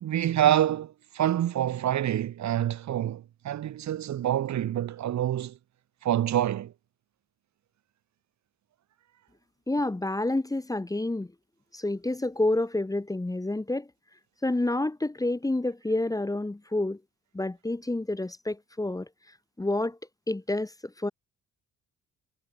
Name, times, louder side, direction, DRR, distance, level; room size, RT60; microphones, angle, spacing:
voice 1, 0.0-5.6 6.0-6.7, right 11 dB, 65° right, 1.7 m, -27 dB
voice 2, 9.7-11.3 11.7-13.9 14.4-17.0 17.3-19.1 19.6-20.0 20.3-21.1, left 2 dB, 10° left, 1.4 m, -28 dB
cardioid pair, 90°, 30 cm